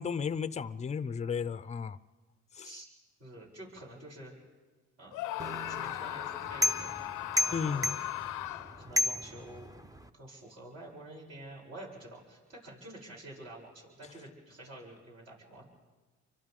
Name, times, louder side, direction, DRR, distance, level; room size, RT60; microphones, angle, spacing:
voice 1, 0.0-2.0 2.6-2.7 7.5-8.0, left 6 dB, 25° left, 0.5 m, -34 dB
voice 2, 3.2-4.4 5.0-7.1 7.3-8.0 8.8-9.7 10.1-15.6, right 1 dB, 60° right, 7.8 m, -49 dB
Screaming, 5.1-8.9, left 14 dB, 85° left, 0.6 m, -38 dB
sound 1, 5.4-10.1, left 2 dB, 10° right, 0.8 m, -34 dB
29.5 x 24.5 x 3.7 m
cardioid pair, 90°, 30 cm